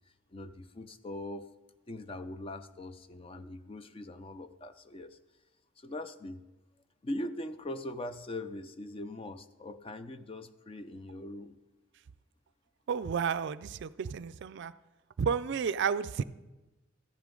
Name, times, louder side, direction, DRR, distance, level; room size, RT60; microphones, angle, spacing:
voice 1, 0.3-1.5 1.9-5.2 5.8-6.4 7.0-11.6, left 1 dB, 25° left, 11 dB, 0.5 m, -41 dB
voice 2, 12.9-14.7 15.2-16.2, right 6 dB, 55° right, 15 dB, 0.4 m, -31 dB
14.5 x 10.5 x 3.8 m, 1.1 s
head